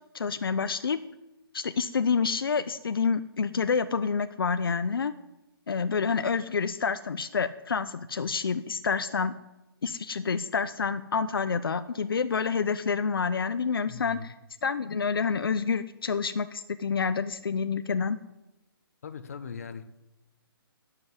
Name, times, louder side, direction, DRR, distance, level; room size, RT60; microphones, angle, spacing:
voice 1, 0.1-1.0 1.5-5.1 5.7-9.3 9.8-14.3 14.6-18.2, left 5 dB, 65° left, 11 dB, 0.9 m, -28 dB
voice 2, 13.9-14.3 19.0-19.9, left 5 dB, 40° left, 9 dB, 1.2 m, -40 dB
19.0 x 8.0 x 9.6 m, 0.97 s
hypercardioid pair, 175°, 13 cm